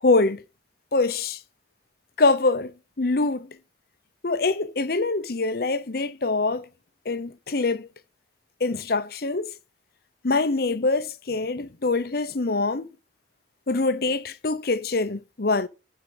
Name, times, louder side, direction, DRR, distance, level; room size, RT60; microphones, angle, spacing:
voice 1, 0.0-0.4 0.9-1.4 2.2-3.5 4.2-6.7 7.0-7.9 8.6-9.5 10.2-12.9 13.7-15.7, left 3 dB, 60° left, 0.9 m, -24 dB
10.0 x 4.8 x 7.8 m
head